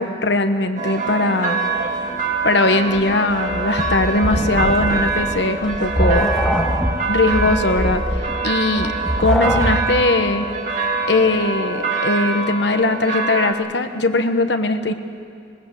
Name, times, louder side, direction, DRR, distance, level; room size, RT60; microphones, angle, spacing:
voice 1, 0.0-1.6 2.4-6.3 7.1-8.0 8.4-8.9 9.2-10.5 11.1-14.9, left 2 dB, 65° left, 8 dB, 1.2 m, -19 dB
sound 1, 0.8-13.5, right 4 dB, 45° right, 2.2 m, -24 dB
Engine, 1.6-11.5, right 1 dB, 20° right, 3.5 m, -46 dB
sound 2, 3.0-10.0, equal, 5° left, 1.4 m, -23 dB
20.5 x 20.5 x 8.3 m, 2.4 s
head